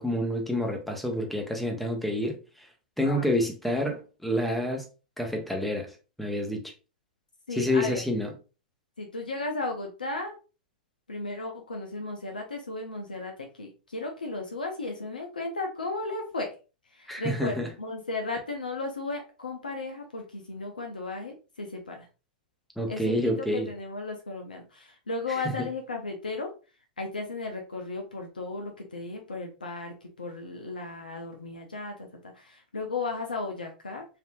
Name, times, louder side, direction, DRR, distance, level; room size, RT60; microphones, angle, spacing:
voice 1, 0.0-2.4 3.0-4.8 5.2-6.6 7.5-8.3 17.1-17.7 22.8-23.7, left 1 dB, ahead, 0.7 m, -28 dB
voice 2, 7.5-8.0 9.0-10.3 11.1-16.5 16.9-22.1 22.9-26.5 27.0-34.0, left 3 dB, 85° left, 0.5 m, -35 dB
3.4 x 2.6 x 2.2 m
figure-of-eight pair, 100°, 5 cm